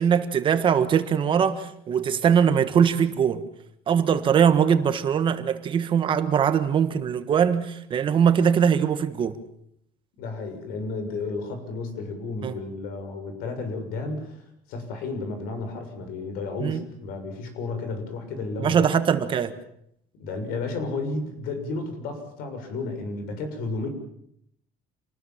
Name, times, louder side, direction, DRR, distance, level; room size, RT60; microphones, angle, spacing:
voice 1, 0.0-3.4 3.9-9.4 12.4-12.5 16.6-16.8 18.6-19.5, right 7 dB, 30° right, 1.6 m, -21 dB
voice 2, 10.2-18.9 20.1-23.9, left 3 dB, 75° left, 6.9 m, -32 dB
28.0 x 20.0 x 7.4 m
cardioid pair, 170°, 16 cm